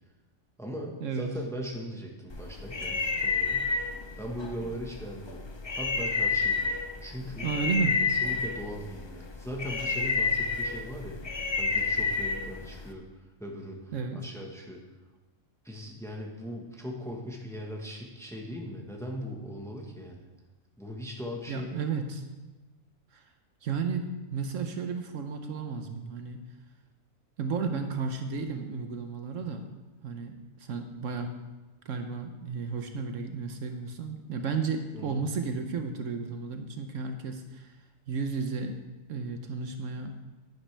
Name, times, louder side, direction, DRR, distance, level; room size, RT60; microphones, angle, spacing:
voice 1, 0.6-3.7 4.2-5.5 5.8-7.5 8.1-11.2 11.6-13.0 13.4-14.8 15.6-20.3 20.8-21.8 34.9-35.2, equal, ahead, 0 dB, 1.2 m, -39 dB
sound 1, 2.3-12.9, left 4 dB, 40° left, 0.3 m, -30 dB
voice 2, 7.4-8.0 13.9-14.2 21.5-22.3 23.1-23.3 23.6-26.4 27.4-29.6 30.0-31.3 31.8-37.8 38.1-38.8 39.1-40.2, right 5 dB, 70° right, 6 dB, 1.1 m, -33 dB
10.5 x 10.0 x 3.4 m, 1.1 s
omnidirectional pair, 1.4 m